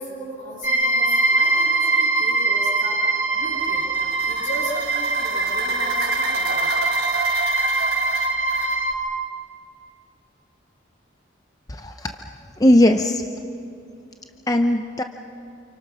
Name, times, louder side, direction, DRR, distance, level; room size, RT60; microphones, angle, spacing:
voice 1, 0.0-3.9 4.2-6.7, equal, 75° left, -6 dB, 8.0 m, -36 dB
sound 1, 0.6-8.9, right 2 dB, 10° right, 2.2 m, -22 dB
sound 2, 3.5-8.8, right 5 dB, 50° right, 1.5 m, -32 dB
voice 2, 11.7-12.1 12.6-13.2 14.5-15.0, left 1 dB, 20° left, 5 dB, 0.7 m, -18 dB
29.0 x 28.5 x 6.3 m, 2.7 s
head